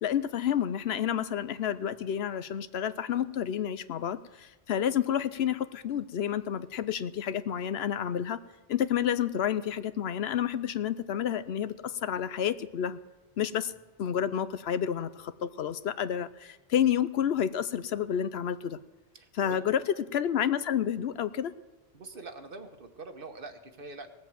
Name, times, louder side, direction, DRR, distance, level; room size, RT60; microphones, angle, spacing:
voice 1, 0.0-8.4 8.7-13.0 13.4-13.7 14.0-18.8 19.3-21.5, left 9 dB, 75° left, 13 dB, 0.9 m, -30 dB
voice 2, 19.1-19.6 21.9-24.1, right 3 dB, 55° right, 7 dB, 1.4 m, -44 dB
18.5 x 7.7 x 7.5 m, 1.2 s
omnidirectional pair, 1.1 m